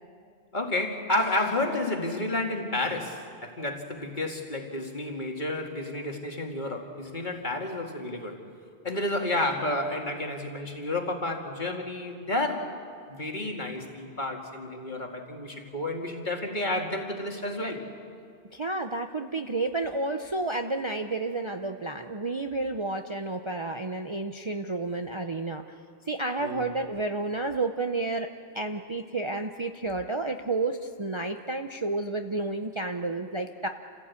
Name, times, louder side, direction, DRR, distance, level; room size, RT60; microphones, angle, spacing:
voice 1, 0.5-8.4 8.8-12.7 13.1-17.8 26.4-26.7, left 2 dB, 45° left, 2 dB, 2.3 m, -31 dB
voice 2, 18.5-25.6 26.1-33.7, right 2 dB, 30° right, 5 dB, 0.7 m, -31 dB
28.5 x 15.5 x 8.4 m, 2.2 s
omnidirectional pair, 1.1 m